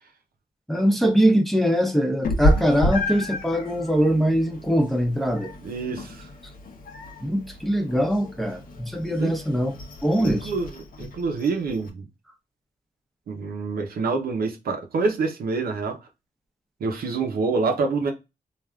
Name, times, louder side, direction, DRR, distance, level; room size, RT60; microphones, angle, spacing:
voice 1, 0.7-5.5 7.2-9.8 10.0-10.5, equal, ahead, 0.6 m, -22 dB
Meow, 2.2-11.9, left 1 dB, 70° left, 0.7 m, -30 dB
voice 2, 5.6-6.3 9.2-9.3 10.2-12.1 13.3-16.0 16.8-18.1, right 4 dB, 90° right, 0.7 m, -26 dB
3.3 x 2.5 x 2.3 m
cardioid pair, 85°, 15 cm